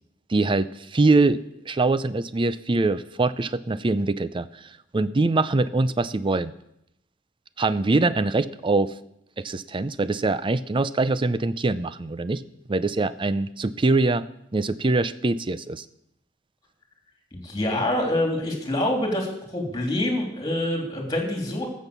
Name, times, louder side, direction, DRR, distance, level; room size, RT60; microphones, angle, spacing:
voice 1, 0.3-1.4 1.7-6.5 7.6-8.9 9.4-12.4 12.7-14.3 14.5-15.9, right 3 dB, 25° right, 15 dB, 0.5 m, -23 dB
voice 2, 17.3-19.3 19.5-21.7, left 1 dB, 20° left, 1 dB, 3.2 m, -26 dB
14.5 x 7.4 x 6.8 m, 0.80 s
head